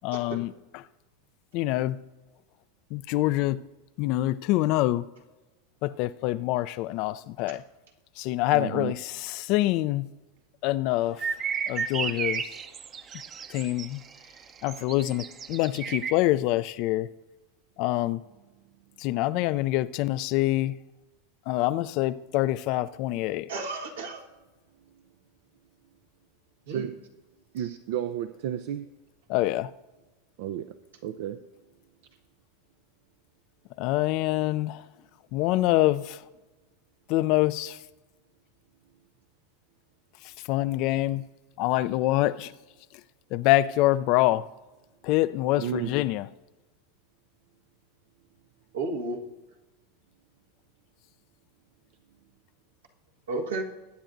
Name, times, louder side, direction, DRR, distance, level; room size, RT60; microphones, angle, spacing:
voice 1, 0.0-0.8 1.5-2.0 2.9-3.6 4.0-5.1 5.8-7.6 8.2-10.1 10.6-11.2 11.7-12.4 13.5-14.0 14.6-17.1 17.8-18.2 19.0-20.8 21.5-23.5 29.3-29.7 33.8-34.8 35.3-36.2 37.1-37.8 40.2-41.2 41.6-42.5 43.3-44.5 45.0-46.3, left 16 dB, 55° left, 0.4 m, -25 dB
voice 2, 8.5-8.9 26.7-26.9 27.5-28.9 30.4-30.8 31.0-31.4 45.6-45.9, right 10 dB, 65° right, 0.5 m, -32 dB
sound 1, 11.2-16.1, right 6 dB, 35° right, 0.8 m, -33 dB
voice 3, 23.5-24.2 26.7-26.9 48.7-49.2 53.3-53.6, right 3 dB, 80° right, 1.7 m, -32 dB
20.5 x 9.0 x 2.6 m
hypercardioid pair, 95°, 0 cm